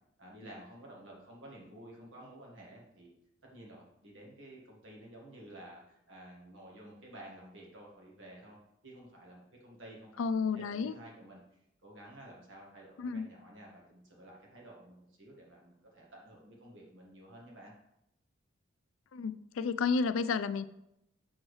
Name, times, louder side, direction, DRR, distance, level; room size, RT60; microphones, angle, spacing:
voice 1, 0.2-3.1 3.5-8.6 8.8-17.7, right 1 dB, 70° right, -3 dB, 1.7 m, -52 dB
voice 2, 10.2-11.0 13.0-13.3 19.1-20.7, left 5 dB, 90° left, 14 dB, 0.4 m, -31 dB
7.1 x 6.2 x 3.2 m, 0.84 s
head